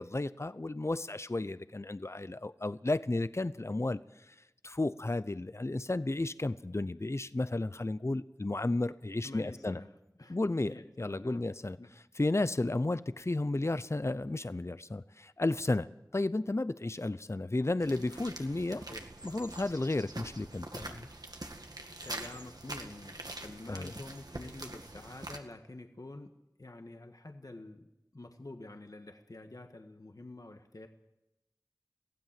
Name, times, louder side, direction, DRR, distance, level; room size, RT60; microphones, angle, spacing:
voice 1, 0.0-9.8 10.3-11.8 12.2-18.8 19.2-21.1 23.7-23.9, left 2 dB, 45° left, 15 dB, 0.7 m, -33 dB
voice 2, 9.2-9.9 10.2-10.4 10.6-11.4 11.8-11.9 18.7-19.0 22.0-26.3 26.6-30.9, left 2 dB, 60° left, 5 dB, 1.7 m, -48 dB
sound 1, 17.8-25.4, right 2 dB, 75° right, 2.0 m, -45 dB
23.5 x 16.0 x 7.7 m, 0.92 s
wide cardioid pair, 40°, 7 cm